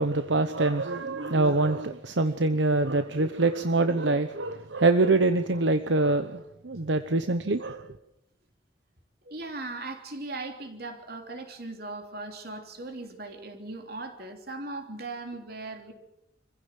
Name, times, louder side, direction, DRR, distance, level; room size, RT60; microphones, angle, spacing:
voice 1, 0.0-7.9, right 2 dB, 80° right, 9 dB, 1.0 m, -25 dB
voice 2, 9.2-15.9, right 2 dB, 55° right, 5 dB, 3.3 m, -38 dB
26.0 x 16.0 x 7.6 m, 0.83 s
head